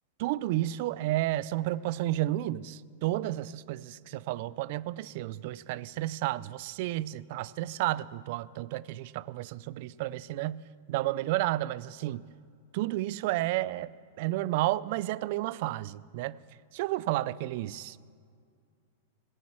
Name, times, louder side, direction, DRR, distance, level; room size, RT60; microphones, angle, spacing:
voice 1, 0.2-12.3 12.7-16.4 16.7-18.0, right 15 dB, 55° right, 20 dB, 0.4 m, -32 dB
16.0 x 9.2 x 7.4 m, 2.2 s
hypercardioid pair, 120°, 0 cm